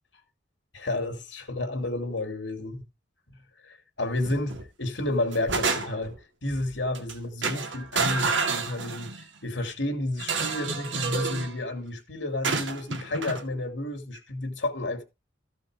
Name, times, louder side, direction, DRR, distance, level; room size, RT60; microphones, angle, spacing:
voice 1, 0.7-2.8 3.6-6.1 6.4-9.1 9.4-15.0, left 2 dB, 75° left, 2.9 m, -31 dB
sound 1, 4.2-4.7 5.1-6.2 6.9-7.1 7.4-9.3 10.2-11.5 12.4-13.4, right 4 dB, 75° right, 2.2 m, -29 dB
15.0 x 5.4 x 5.0 m
head